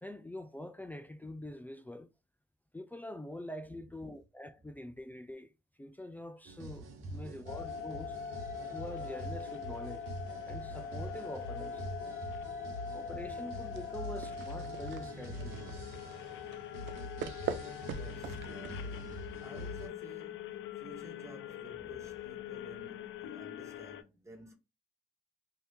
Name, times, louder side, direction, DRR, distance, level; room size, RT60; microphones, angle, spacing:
voice 1, 0.0-2.1 2.7-5.5 5.8-8.2 8.7-10.1 10.4-11.9 12.9-15.6, left 1 dB, 10° left, 0.3 m, -45 dB
sound 1, 6.5-19.9, right 1 dB, 90° right, 1.0 m, -45 dB
voice 2, 7.0-7.5 15.8-17.2 17.8-24.5, right 1 dB, 15° right, 1.4 m, -55 dB
sound 2, 7.5-24.0, left 8 dB, 75° left, 0.5 m, -43 dB
sound 3, 13.7-19.4, right 7 dB, 70° right, 0.5 m, -43 dB
2.8 x 2.7 x 3.4 m
cardioid pair, 90°, 20 cm